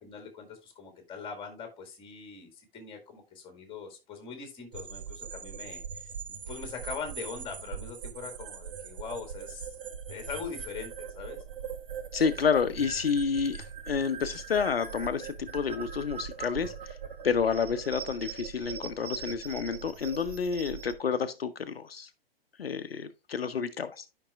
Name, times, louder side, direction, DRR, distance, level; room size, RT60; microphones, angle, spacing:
voice 1, 0.0-6.1 6.5-9.7 10.1-11.4, left 5 dB, 15° left, 1.8 m, -42 dB
sound 1, 4.7-21.0, right 7 dB, 60° right, 1.0 m, -41 dB
voice 2, 12.1-17.0 17.2-22.1 22.6-24.1, left 6 dB, 75° left, 0.6 m, -29 dB
11.5 x 5.4 x 2.3 m
figure-of-eight pair, 110°, 30 cm